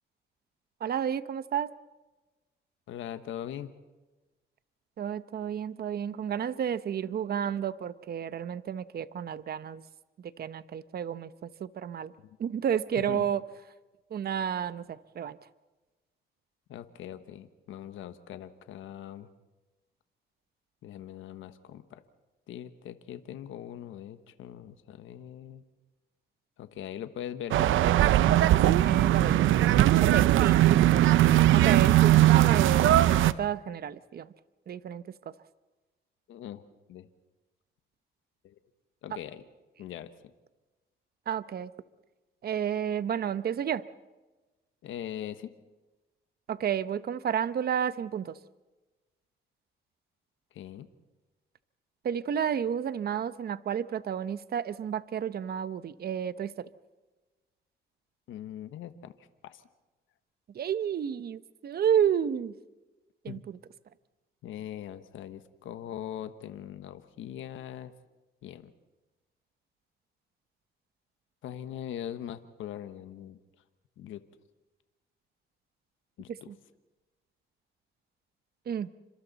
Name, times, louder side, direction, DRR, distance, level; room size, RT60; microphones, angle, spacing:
voice 1, 0.8-1.7 5.0-9.8 10.4-12.1 12.4-13.4 14.1-15.4 28.8-31.1 31.5-34.3 34.7-35.0 41.3-41.7 42.4-43.8 46.5-48.4 52.0-56.7 60.5-62.5 63.2-63.6 76.5-76.6 78.7-78.9, right 9 dB, 50° right, 14 dB, 0.9 m, -31 dB
voice 2, 2.9-3.7 13.1-13.3 16.7-19.3 20.8-22.0 22.5-25.6 26.6-27.7 36.3-36.6 36.9-37.1 38.4-38.5 39.0-39.4 39.8-40.1 44.8-45.5 50.5-50.9 58.3-59.6 63.3-63.4 64.4-67.9 68.4-68.7 71.4-73.4 74.0-74.2 76.2-76.5, left 10 dB, 80° left, 10 dB, 1.3 m, -41 dB
sound 1, 27.5-33.3, right 13 dB, 80° right, 0.7 m, -20 dB
29.5 x 26.0 x 4.1 m, 1.2 s
cardioid pair, 90°, 20 cm